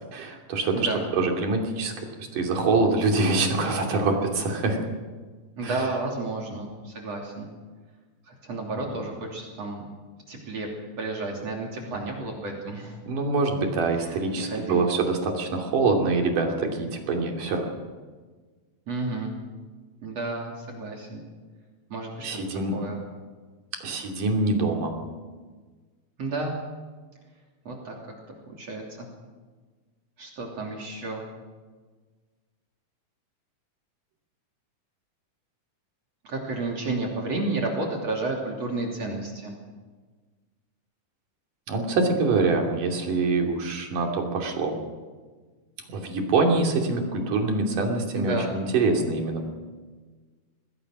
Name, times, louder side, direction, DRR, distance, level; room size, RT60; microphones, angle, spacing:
voice 1, 0.1-0.9 1.2-4.8 5.6-5.9 8.8-8.9 13.1-17.7 22.2-22.7 23.8-24.9 41.7-44.8 45.9-49.5, right 3 dB, 80° right, 1 dB, 4.5 m, -25 dB
voice 2, 5.6-7.5 8.2-9.9 10.3-10.7 11.0-13.0 13.9-14.9 18.9-19.3 20.0-21.2 21.9-22.4 22.7-23.0 26.2-26.6 27.7-28.0 28.5-29.1 30.2-31.2 36.2-39.5 48.1-48.5, right 2 dB, 50° right, -1 dB, 4.0 m, -31 dB
26.5 x 19.5 x 6.2 m, 1.4 s
omnidirectional pair, 3.7 m